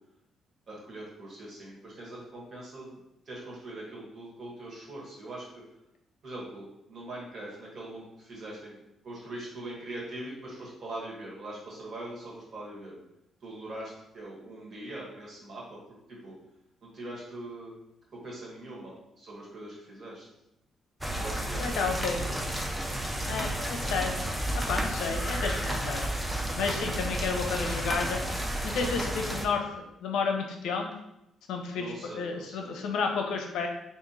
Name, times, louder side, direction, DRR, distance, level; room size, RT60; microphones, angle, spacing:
voice 1, 0.7-3.0 3.2-5.4 6.2-8.8 9.0-12.9 13.4-15.8 16.1-16.4 16.8-17.7 18.1-20.3 21.2-22.5 31.7-32.7, right 1 dB, 55° right, -4 dB, 1.4 m, -42 dB
sound 1, 21.0-29.5, right 1 dB, 5° right, 0.5 m, -32 dB
voice 2, 21.6-22.2 23.3-24.3 24.5-26.1 26.6-28.2 28.6-29.6 30.0-30.9 31.5-33.7, left 5 dB, 80° left, 2 dB, 0.6 m, -31 dB
2.9 x 2.5 x 3.8 m, 0.85 s
cardioid pair, 90°, 0 cm